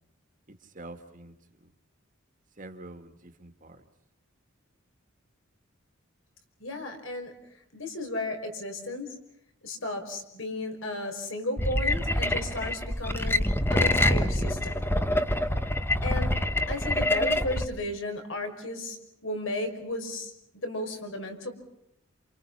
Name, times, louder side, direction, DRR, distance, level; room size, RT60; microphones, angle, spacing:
voice 1, 0.5-1.3 1.6-1.7 2.6-3.8, right 2 dB, 40° right, 7 dB, 2.3 m, -46 dB
voice 2, 6.6-9.1 9.6-14.9 16.0-16.3 16.7-19.0 19.2-21.5, left 2 dB, 65° left, 5 dB, 5.6 m, -34 dB
sound 1, 11.6-17.6, left 1 dB, 10° left, 1.4 m, -26 dB
29.5 x 28.5 x 5.7 m, 0.78 s
head